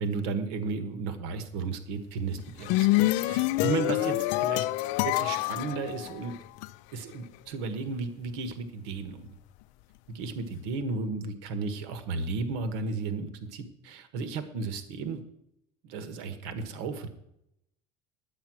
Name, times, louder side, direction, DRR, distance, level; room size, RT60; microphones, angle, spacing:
voice 1, 0.0-2.9 3.3-4.6 5.0-6.3 6.9-9.3 10.1-15.2 15.8-17.1, right 4 dB, 85° right, 10 dB, 1.5 m, -34 dB
sound 1, 2.4-6.7, left 17 dB, 70° left, 0.5 m, -27 dB
11.5 x 8.7 x 6.2 m, 0.80 s
cardioid pair, 150°, 13 cm